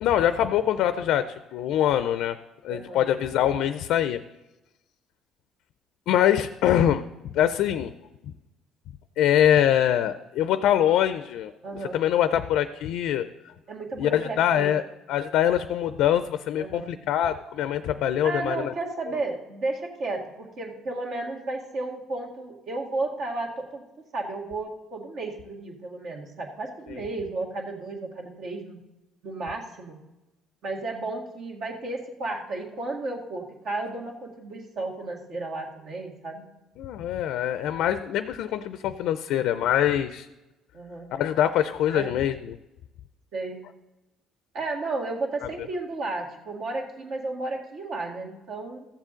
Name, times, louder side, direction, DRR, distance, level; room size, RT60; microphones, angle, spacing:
voice 1, 0.0-2.4 2.6-4.2 6.1-7.0 7.3-7.9 9.2-11.5 11.8-13.3 14.0-14.8 15.1-18.7 36.8-40.3 41.1-42.6, left 10 dB, 75° left, 12 dB, 0.4 m, -24 dB
voice 2, 2.7-3.0 11.6-12.0 13.7-14.7 16.6-16.9 18.2-23.8 24.1-28.8 29.2-30.0 30.6-36.5 40.7-41.1 41.9-42.1 43.3-43.6 44.5-48.9, right 2 dB, 65° right, 0 dB, 1.9 m, -33 dB
14.5 x 7.4 x 3.8 m, 1.0 s
cardioid pair, 105°, 0 cm